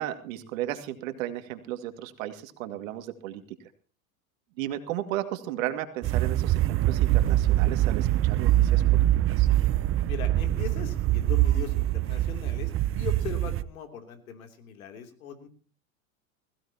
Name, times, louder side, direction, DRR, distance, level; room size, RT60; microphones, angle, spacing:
voice 1, 0.0-3.4 4.6-9.0 9.4-9.5, right 13 dB, 70° right, 8 dB, 2.2 m, -34 dB
sound 1, 6.0-13.6, right 14 dB, 30° right, 0.7 m, -24 dB
voice 2, 10.1-15.5, left 7 dB, 85° left, 6 dB, 3.1 m, -39 dB
21.0 x 16.0 x 2.9 m, 0.39 s
hypercardioid pair, 105°, 41 cm